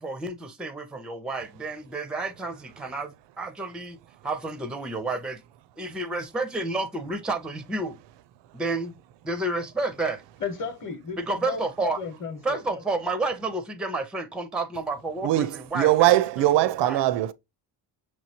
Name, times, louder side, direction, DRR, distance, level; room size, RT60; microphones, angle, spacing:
voice 1, 0.0-0.3 0.6-4.0 4.2-5.4 5.8-7.9 8.5-8.9 9.2-10.2 11.2-12.0 12.4-16.5 16.8-17.0, right 2 dB, ahead, 0.4 m, -30 dB
voice 2, 10.4-12.8, left 5 dB, 35° left, 0.9 m, -34 dB
voice 3, 15.2-17.3, right 14 dB, 75° right, 0.6 m, -21 dB
6.1 x 3.1 x 2.7 m
cardioid pair, 150°, 43 cm